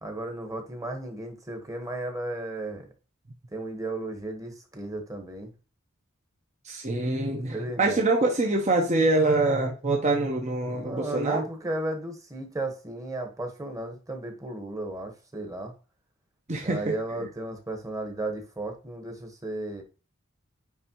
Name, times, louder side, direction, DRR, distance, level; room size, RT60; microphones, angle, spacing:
voice 1, 0.0-2.8 3.5-5.5 7.5-8.0 10.7-15.7 16.6-19.8, right 2 dB, 15° right, 3 dB, 1.3 m, -34 dB
voice 2, 6.6-11.5 16.5-16.9, right 2 dB, 35° right, 1 dB, 1.0 m, -25 dB
9.4 x 3.4 x 3.0 m, 0.33 s
head